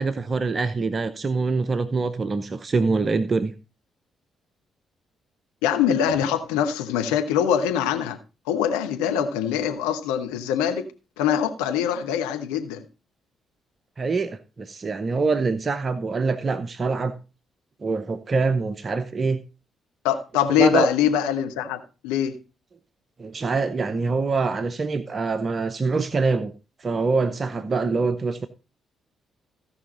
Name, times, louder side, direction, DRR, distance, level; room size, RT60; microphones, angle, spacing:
voice 1, 0.0-3.5 14.0-17.1 17.8-19.4 20.6-20.9 23.2-26.5 26.8-28.5, right 4 dB, 40° right, 0.7 m, -24 dB
voice 2, 5.6-8.2 8.5-10.9 11.2-12.8 20.0-22.4, left 9 dB, 75° left, 1.0 m, -23 dB
15.5 x 5.6 x 4.0 m
figure-of-eight pair, 40°, 0 cm